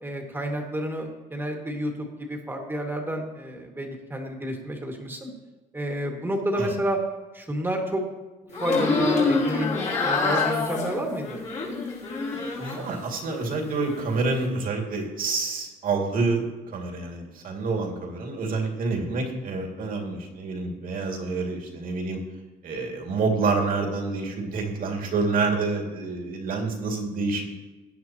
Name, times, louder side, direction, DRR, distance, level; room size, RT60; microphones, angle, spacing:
voice 1, 0.0-5.3 5.7-7.0 7.3-8.1 8.6-9.8 10.0-11.4, equal, 10° right, 1 dB, 2.2 m, -30 dB
sound 1, 8.5-12.9 13.3-14.0, left 3 dB, 45° left, 3.7 m, -26 dB
voice 2, 12.6-22.2 22.6-27.5, right 3 dB, 55° right, 1 dB, 2.5 m, -28 dB
18.0 x 10.0 x 3.1 m, 1.2 s
cardioid pair, 110°, 17 cm